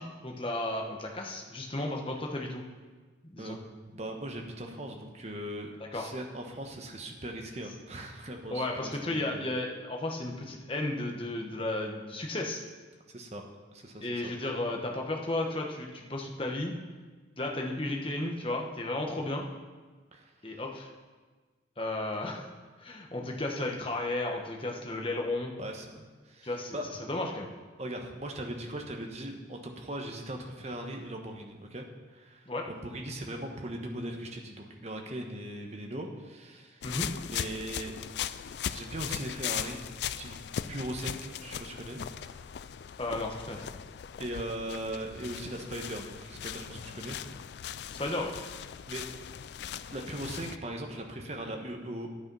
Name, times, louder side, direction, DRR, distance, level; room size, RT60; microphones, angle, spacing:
voice 1, 0.0-2.6 3.2-3.6 5.9-6.1 8.5-12.6 14.0-16.7 17.4-19.5 20.4-20.9 21.8-22.5 22.8-25.5 26.4-26.8 27.1-27.5 32.5-32.7 36.8-37.1 43.0-43.7 47.9-48.3, left 2 dB, 30° left, 1 dB, 1.2 m, -33 dB
voice 2, 3.9-9.4 13.1-13.4 13.7-14.3 20.1-20.3 25.6-26.9 27.8-36.8 37.3-38.0 38.7-39.8 40.0-40.4 40.7-42.0 44.2-47.2 48.9-49.0 49.9-52.1, right 1 dB, 35° right, 2 dB, 1.1 m, -39 dB
sound 1, 36.8-50.6, left 9 dB, 60° left, 0.3 m, -39 dB
9.9 x 8.7 x 5.5 m, 1.4 s
head